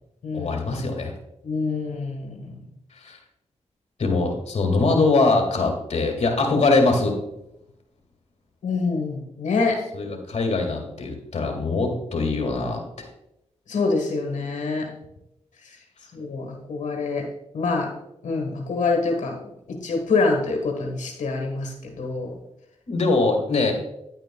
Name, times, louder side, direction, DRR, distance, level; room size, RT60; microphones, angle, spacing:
voice 1, 0.3-1.1 3.0-3.2 4.0-7.2 9.9-13.1 22.9-23.7, left 3 dB, 65° left, 3 dB, 2.0 m, -22 dB
voice 2, 1.4-2.6 8.6-9.8 13.7-14.9 15.6-15.7 16.1-17.3 17.5-17.9 18.2-19.4 19.7-22.3, left 3 dB, 85° left, 2 dB, 1.3 m, -25 dB
9.8 x 9.0 x 2.2 m, 0.83 s
cardioid pair, 50°, 12 cm